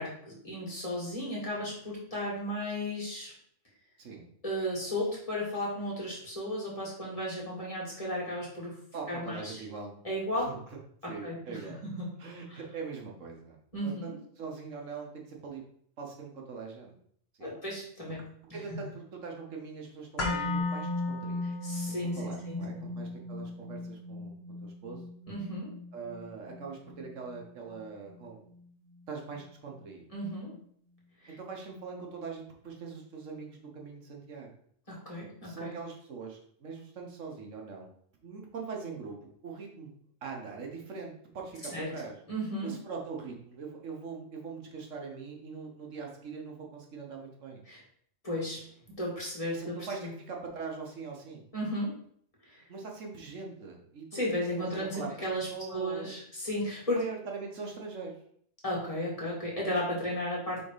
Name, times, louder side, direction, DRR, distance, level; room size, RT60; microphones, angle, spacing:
voice 1, 0.0-3.3 4.4-8.8 9.1-9.6 10.0-10.5 11.0-12.1 12.5-12.6 13.7-14.1 17.4-18.2 21.6-22.2 22.5-22.9 25.3-25.7 30.1-30.5 31.2-31.3 34.9-35.7 41.7-41.9 42.3-42.7 47.7-47.8 48.2-48.6 49.0-49.8 50.0-50.1 51.5-52.0 52.5-52.6 54.1-57.0 58.6-60.6, left 1 dB, 25° left, -5 dB, 2.2 m, -34 dB
voice 2, 8.9-9.9 10.3-10.8 11.1-11.8 12.2-13.6 13.8-15.6 16.0-16.9 17.4-17.5 18.5-21.5 21.9-25.0 25.9-28.5 29.1-30.1 31.3-34.5 35.4-37.9 38.2-39.2 39.4-39.9 40.2-42.1 42.6-47.6 49.5-51.5 52.7-54.2 54.5-56.1 56.9-58.2, right 5 dB, 80° right, 1 dB, 1.5 m, -42 dB
sound 1, 20.2-28.3 28.6-28.7, left 2 dB, 55° left, 1.7 m, -36 dB
4.9 x 3.8 x 5.0 m, 0.63 s
omnidirectional pair, 1.3 m